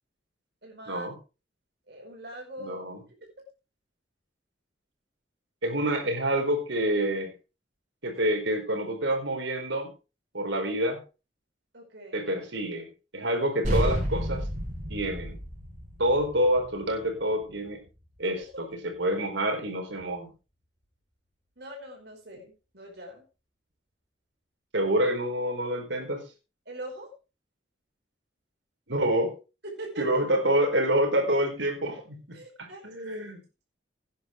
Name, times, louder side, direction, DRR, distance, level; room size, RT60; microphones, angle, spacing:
voice 1, 0.6-1.1 1.9-2.8 11.7-12.3 18.4-18.5 21.6-23.3 26.7-27.1 29.6-30.1 32.3-32.8, right 1 dB, 60° right, 1 dB, 5.3 m, -42 dB
voice 2, 2.6-3.0 5.6-7.3 8.0-9.9 10.3-11.0 12.1-12.9 13.1-14.4 14.9-15.4 16.0-17.8 18.2-18.4 18.8-20.3 24.7-26.2 28.9-29.3 30.0-32.2 32.8-33.4, right 1 dB, 80° right, 4 dB, 4.3 m, -27 dB
sound 1, 13.6-18.4, equal, 40° right, 6.4 m, -32 dB
18.5 x 10.0 x 3.2 m, 0.31 s
head